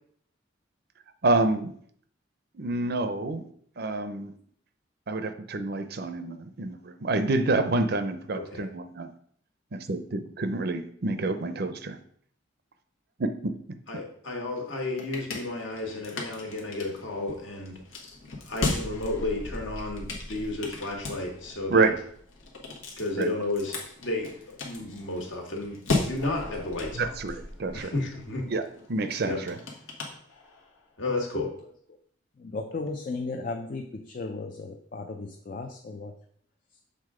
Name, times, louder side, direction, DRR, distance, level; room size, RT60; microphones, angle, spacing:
voice 1, 1.2-1.7 2.5-3.5 3.8-4.3 5.1-9.1 9.7-12.0 13.2-13.5 21.7-21.9 23.2-23.3 26.9-27.9 28.5-28.6 28.9-29.5, right 3 dB, 50° right, 9 dB, 0.6 m, -27 dB
voice 2, 8.3-8.7 13.9-17.8 18.5-21.9 23.0-23.8 24.0-27.1 27.7-28.5 29.2-29.4 31.0-31.5, left 2 dB, 70° left, 1 dB, 1.6 m, -32 dB
sound 1, 14.6-30.8, left 2 dB, 85° left, 1.3 m, -37 dB
voice 3, 32.4-36.1, left 3 dB, 40° left, 5 dB, 0.4 m, -35 dB
6.7 x 3.8 x 4.9 m, 0.62 s
head